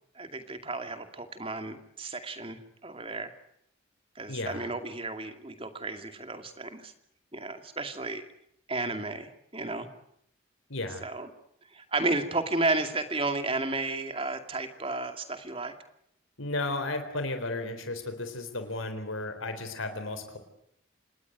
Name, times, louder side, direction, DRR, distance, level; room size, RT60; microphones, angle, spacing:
voice 1, 0.2-3.3 4.2-6.9 7.3-8.3 8.7-9.9 11.0-11.3 11.7-15.7, right 2 dB, 25° right, 8 dB, 2.4 m, -33 dB
voice 2, 4.3-4.7 10.7-11.1 16.4-20.4, left 2 dB, 85° left, 8 dB, 3.9 m, -34 dB
26.5 x 20.5 x 9.4 m, 0.73 s
head